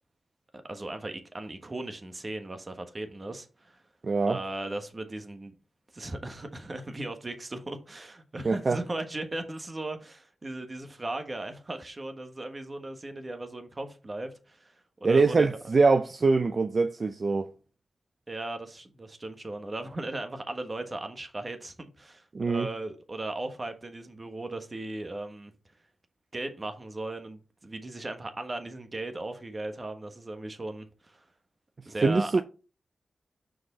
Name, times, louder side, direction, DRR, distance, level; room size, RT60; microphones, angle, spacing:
voice 1, 0.5-3.8 4.3-5.5 5.9-15.7 18.3-25.5 26.3-31.3 31.8-32.4, right 2 dB, 30° right, 1.3 m, -37 dB
voice 2, 4.0-4.4 8.4-8.8 15.0-17.5 22.3-22.7 32.0-32.4, right 3 dB, 45° right, 0.5 m, -23 dB
6.1 x 4.8 x 4.2 m
wide cardioid pair, 85°, 0 cm